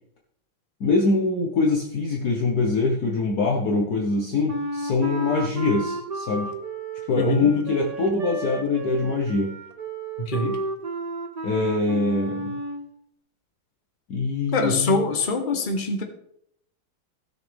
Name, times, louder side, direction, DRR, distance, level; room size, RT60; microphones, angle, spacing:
voice 1, 0.8-6.5 7.1-9.5 11.4-12.6 14.1-15.0, left 3 dB, 55° left, 0 dB, 1.5 m, -23 dB
Wind instrument woodwind instrument, 4.5-12.9, right 3 dB, 85° right, 0.3 m, -33 dB
voice 2, 7.1-7.5 10.2-10.6 14.5-16.0, left 2 dB, 30° left, 4 dB, 1.2 m, -23 dB
16.5 x 6.5 x 3.5 m, 0.72 s
omnidirectional pair, 2.3 m